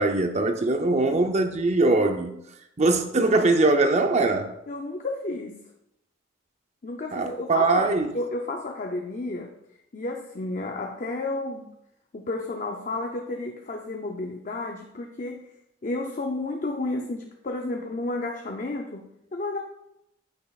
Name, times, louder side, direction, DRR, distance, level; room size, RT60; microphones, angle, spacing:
voice 1, 0.0-2.3 2.8-4.5 7.1-8.1, right 2 dB, 35° right, 0.6 m, -22 dB
voice 2, 4.7-5.6 6.8-9.5 9.9-11.7 12.1-15.5 15.8-19.6, left 2 dB, 40° left, 0.5 m, -32 dB
8.7 x 6.1 x 2.4 m
head